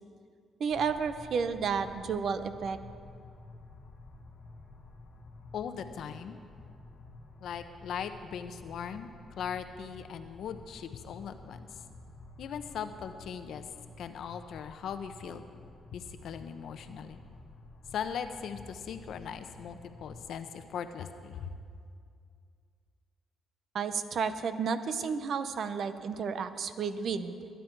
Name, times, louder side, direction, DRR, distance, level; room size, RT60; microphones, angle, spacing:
voice 1, 0.6-2.8 23.7-27.5, right 6 dB, 60° right, 11 dB, 0.8 m, -32 dB
sound 1, 0.7-20.3, left 2 dB, 50° left, 1.4 m, -51 dB
voice 2, 5.5-6.4 7.4-9.1 9.4-11.7 12.4-13.6 14.0-15.4 15.9-17.2 17.9-21.5, left 7 dB, 70° left, 9 dB, 0.8 m, -39 dB
22.0 x 9.4 x 4.6 m, 2.3 s
cardioid pair, 90°, 0 cm